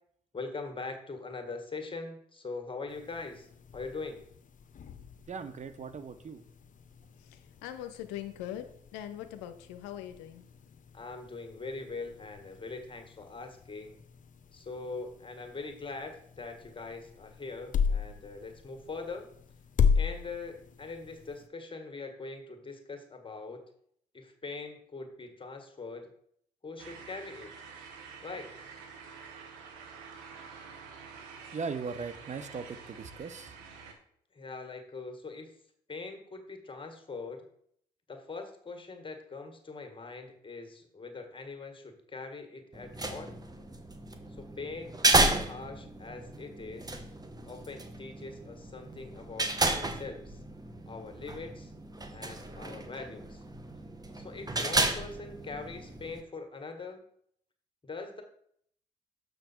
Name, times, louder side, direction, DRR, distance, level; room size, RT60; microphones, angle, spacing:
voice 1, 0.3-3.5 3.7-4.2 10.9-14.0 14.5-19.3 19.9-23.6 24.1-26.1 26.6-27.5 28.2-28.5 34.3-35.5 35.9-37.4 38.1-43.4 44.4-46.9 47.5-50.4 50.9-51.7 52.1-53.4 54.1-57.0 57.8-58.2, left 3 dB, 30° left, 5 dB, 1.9 m, -42 dB
sound 1, 2.9-21.5, left 6 dB, 50° left, 0.8 m, -37 dB
voice 2, 5.3-6.4 31.5-33.6, right 5 dB, 45° right, 11 dB, 0.8 m, -38 dB
voice 3, 7.2-8.6 8.9-10.5, left 11 dB, 85° left, 9 dB, 0.6 m, -41 dB
sound 2, 26.8-33.9, right 5 dB, 85° right, 1.1 m, -48 dB
sound 3, 42.7-56.2, right 2 dB, 20° right, 1.2 m, -33 dB
6.7 x 6.0 x 4.5 m, 0.66 s
hypercardioid pair, 50°, 17 cm